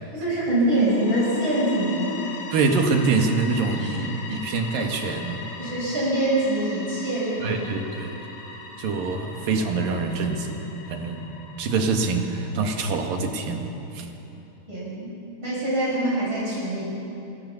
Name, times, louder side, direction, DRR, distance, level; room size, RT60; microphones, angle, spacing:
voice 1, 0.1-2.1 5.6-7.7 14.7-15.1 15.4-16.8, right 1 dB, 30° right, -7 dB, 7.0 m, -24 dB
sound 1, 0.7-13.4, left 3 dB, 80° left, 4.8 m, -40 dB
voice 2, 2.5-5.4 7.4-8.2 8.8-10.6 10.9-11.3 11.6-14.1, right 4 dB, 60° right, 3 dB, 3.3 m, -25 dB
27.5 x 22.5 x 7.2 m, 3.0 s
omnidirectional pair, 4.8 m